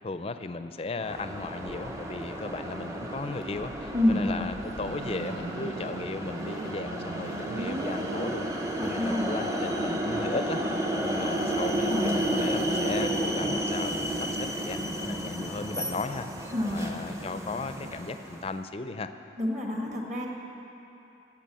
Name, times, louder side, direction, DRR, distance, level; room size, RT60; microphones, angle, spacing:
voice 1, 0.0-10.6 11.0-16.3 16.6-19.1, left 3 dB, 30° left, 10 dB, 0.4 m, -36 dB
sound 1, 1.0-18.5, right 1 dB, 15° right, 0.7 m, -32 dB
Motorcycle, 4.6-9.0, right 2 dB, 85° right, 1.1 m, -39 dB
voice 2, 8.8-9.3 11.9-12.2 16.5-16.8 19.4-20.3, left 1 dB, 40° right, -1 dB, 1.6 m, -27 dB
15.5 x 6.0 x 7.6 m, 3.0 s
head